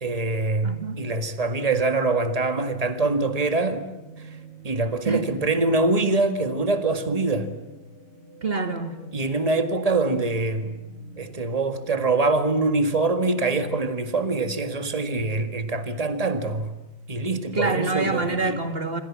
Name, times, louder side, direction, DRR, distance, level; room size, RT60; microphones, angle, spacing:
voice 1, 0.0-3.9 4.2-4.3 4.6-7.5 9.1-10.8 11.2-16.7 17.1-18.6, right 3 dB, 30° right, 1.9 m, -24 dB
voice 2, 0.6-1.1 5.1-5.2 8.4-9.0 17.5-19.0, right 3 dB, 45° right, 2.2 m, -26 dB
sound 1, 3.3-14.4, right 1 dB, 45° left, 8.1 m, -49 dB
26.5 x 26.0 x 7.5 m
omnidirectional pair, 1.4 m